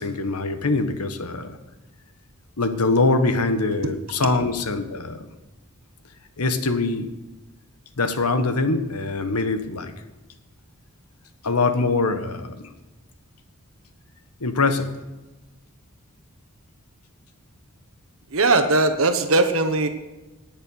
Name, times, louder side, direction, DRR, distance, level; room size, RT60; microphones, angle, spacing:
voice 1, 0.0-1.6 2.6-5.2 6.4-7.1 8.0-9.9 11.4-12.7 14.4-14.9, left 3 dB, 90° left, 9 dB, 1.3 m, -23 dB
voice 2, 18.3-19.9, right 2 dB, 65° right, 7 dB, 1.1 m, -19 dB
19.0 x 6.7 x 6.4 m, 1.1 s
head